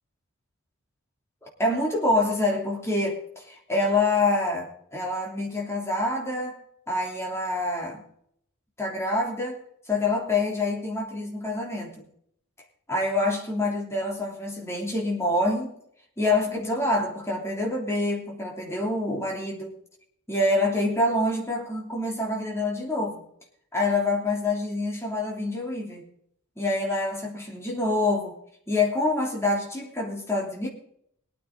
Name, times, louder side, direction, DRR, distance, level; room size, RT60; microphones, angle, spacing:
voice 1, 1.6-6.6 6.9-8.0 8.8-9.6 9.9-11.9 12.9-15.7 16.2-19.8 20.3-23.2 23.7-26.0 26.6-28.4 28.7-30.7, left 2 dB, 10° left, -1 dB, 3.1 m, -26 dB
22.5 x 9.3 x 3.8 m, 0.69 s
head